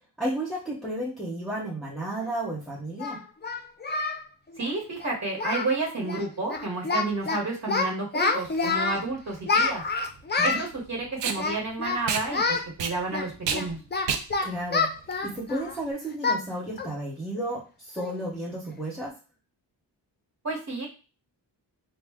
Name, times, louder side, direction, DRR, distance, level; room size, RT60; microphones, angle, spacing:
voice 1, 0.2-3.2 10.4-10.6 14.4-14.9 15.2-19.2, right 1 dB, ahead, -6 dB, 0.7 m, -32 dB
Singing, 2.2-2.3 3.0-4.2 4.5-4.7 5.0-5.1 5.4-5.7 6.0-6.2 6.5-7.4 7.7-9.0 9.5-10.7 11.3-12.0 12.3-12.6 13.1-15.8 16.2-16.4 16.8-17.0 17.4-17.5 18.0-18.2, left 4 dB, 25° left, 0.4 m, -27 dB
voice 2, 4.6-9.8 10.4-13.8 20.4-20.9, right 3 dB, 40° right, -1 dB, 1.1 m, -31 dB
Packing tape duct tape, 8.4-15.9, right 7 dB, 75° right, 0.6 m, -33 dB
3.7 x 2.1 x 3.4 m, 0.32 s
wide cardioid pair, 135°, 42 cm